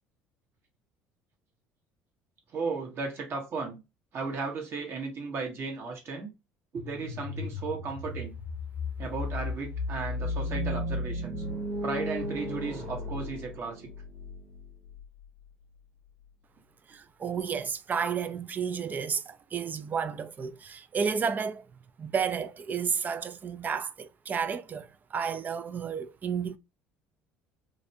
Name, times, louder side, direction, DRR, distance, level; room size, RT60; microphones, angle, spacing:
voice 1, 2.5-3.8 4.1-6.3 6.7-8.3 9.0-11.4 11.8-13.9, right 4 dB, 50° right, 1.2 m, -35 dB
sound 1, 6.8-15.5, left 4 dB, 80° left, 0.3 m, -36 dB
sound 2, 10.2-14.3, right 3 dB, 75° right, 1.0 m, -37 dB
voice 2, 16.9-21.6 22.0-26.6, right 6 dB, 35° right, 0.3 m, -32 dB
2.5 x 2.2 x 2.7 m
supercardioid pair, 85°, 5 cm